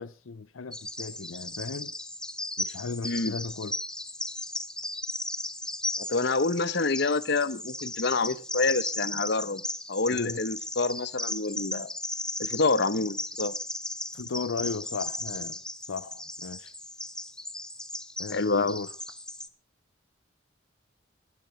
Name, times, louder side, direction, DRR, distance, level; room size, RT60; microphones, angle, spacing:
voice 1, 0.0-1.9 2.6-3.7 7.5-7.6 10.1-10.4 14.1-15.6 15.9-16.7 18.2-18.9, left 4 dB, 90° left, 0.6 m, -36 dB
Bird vocalization bird call bird song, 0.7-19.5, left 1 dB, 5° left, 0.8 m, -36 dB
voice 2, 6.0-9.6 9.9-11.9 12.4-13.5 18.3-18.8, left 3 dB, 55° left, 0.8 m, -27 dB
21.0 x 12.0 x 3.2 m
head